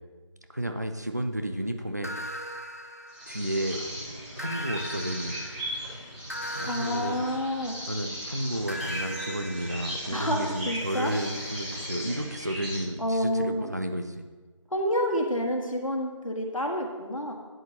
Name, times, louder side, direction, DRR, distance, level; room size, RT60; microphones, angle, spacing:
voice 1, 0.5-2.1 3.3-3.8 4.4-5.4 6.5-7.2 7.9-14.2, right 1 dB, 30° right, 6 dB, 0.5 m, -32 dB
sound 1, 2.0-3.7 4.4-8.1 8.7-12.4, equal, 30° left, 0.4 m, -40 dB
sound 2, 3.1-12.8, equal, 15° right, 3.2 m, -38 dB
voice 2, 6.6-7.7 10.1-11.1 13.0-13.7 14.7-17.3, equal, 85° left, 1 dB, 1.8 m, -29 dB
12.0 x 7.9 x 2.9 m, 1.3 s
figure-of-eight pair, 170°, 17 cm